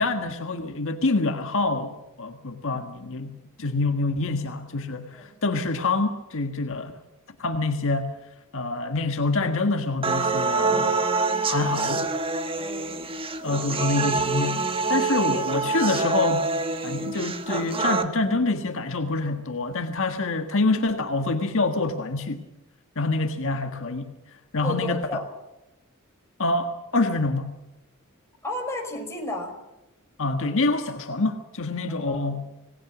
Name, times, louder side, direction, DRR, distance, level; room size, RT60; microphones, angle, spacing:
voice 1, 0.0-6.9 7.4-8.1 8.5-11.1 11.5-12.1 13.4-22.4 23.0-24.1 24.5-25.1 26.4-27.5 30.2-32.5, left 3 dB, 60° left, 6 dB, 1.6 m, -26 dB
voice 2, 5.1-5.5 12.6-13.0 24.6-25.2 28.4-29.5 32.0-32.4, left 1 dB, 10° left, 1 dB, 5.5 m, -33 dB
sound 1, 10.0-18.0, right 3 dB, 25° right, 1.5 m, -26 dB
27.0 x 19.0 x 6.2 m, 0.95 s
head